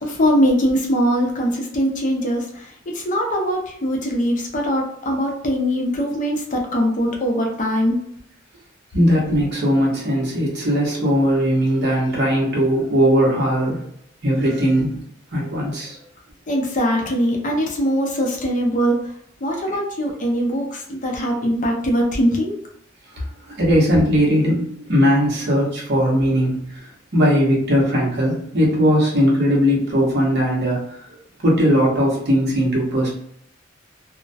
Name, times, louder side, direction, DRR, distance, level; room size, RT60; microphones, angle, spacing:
voice 1, 0.0-8.0 16.5-19.0 19.4-22.6, equal, 40° left, 0 dB, 0.5 m, -21 dB
voice 2, 8.9-13.8 14.2-15.0 15.3-16.0 23.5-26.6 27.1-30.8 31.4-33.2, equal, 60° right, -3 dB, 0.9 m, -18 dB
2.2 x 2.1 x 2.6 m, 0.68 s
head